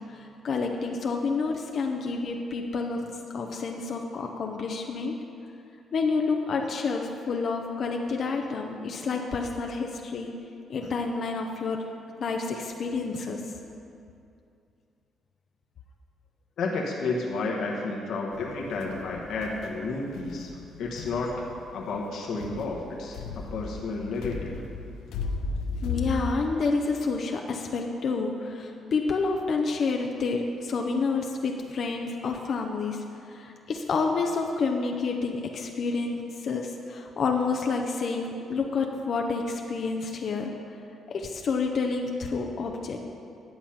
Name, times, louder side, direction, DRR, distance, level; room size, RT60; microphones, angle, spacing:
voice 1, 0.0-3.1 3.3-5.2 5.9-10.3 10.7-11.8 12.2-13.4 25.8-40.5 41.1-43.0, left 4 dB, 55° left, 2 dB, 0.8 m, -29 dB
voice 2, 16.6-21.5 21.7-24.7, left 3 dB, 70° left, -2 dB, 1.3 m, -31 dB
sound 1, 18.3-26.3, left 4 dB, 90° left, 0.7 m, -36 dB
11.0 x 7.1 x 5.8 m, 2.6 s
cardioid pair, 90°, 0 cm